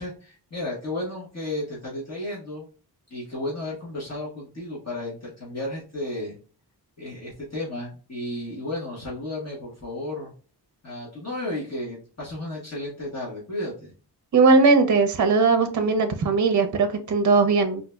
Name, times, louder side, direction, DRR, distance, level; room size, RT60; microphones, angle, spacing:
voice 1, 0.0-2.7 3.1-6.3 7.0-10.3 10.8-13.9, left 1 dB, 40° left, -7 dB, 1.4 m, -33 dB
voice 2, 14.3-17.8, right 4 dB, 45° right, 7 dB, 0.6 m, -19 dB
3.8 x 2.7 x 2.2 m, 0.38 s
wide cardioid pair, 135°, 41 cm